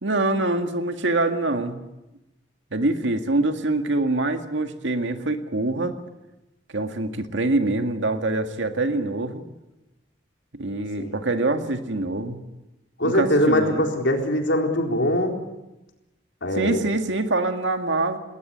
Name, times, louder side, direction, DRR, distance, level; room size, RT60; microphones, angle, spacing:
voice 1, 0.0-1.8 2.7-6.0 6.7-9.4 10.5-12.4 13.0-13.8 16.6-18.2, right 2 dB, 75° right, 6 dB, 2.0 m, -24 dB
voice 2, 13.0-15.3 16.4-16.8, left 1 dB, 70° left, 2 dB, 4.1 m, -22 dB
20.5 x 18.5 x 9.2 m, 0.98 s
head